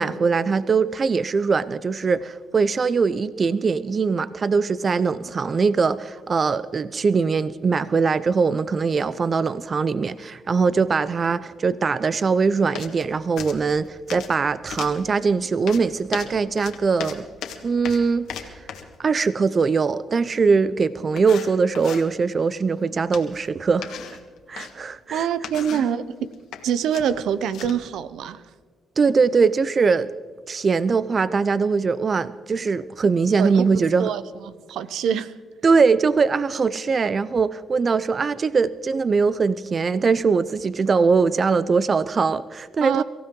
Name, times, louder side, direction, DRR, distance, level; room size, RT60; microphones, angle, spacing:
voice 1, 0.0-17.3 17.6-18.5 19.0-23.9 24.5-25.3 25.7-25.8 29.0-30.1 30.5-34.1 35.6-43.0, right 5 dB, 40° right, 0.5 m, -21 dB
sound 1, 12.7-13.1 13.4-14.4 14.7-15.0 15.7-19.0 20.5-20.6 21.2-22.1 23.1-23.5 23.8-24.7 25.3-25.9 26.3-26.6 26.9-27.9, left 8 dB, 75° left, 1.6 m, -36 dB
voice 2, 25.1-26.3 26.6-28.4 33.4-35.4 42.8-43.0, right 8 dB, 80° right, 0.7 m, -25 dB
24.0 x 15.5 x 3.8 m
cardioid pair, 90°, 0 cm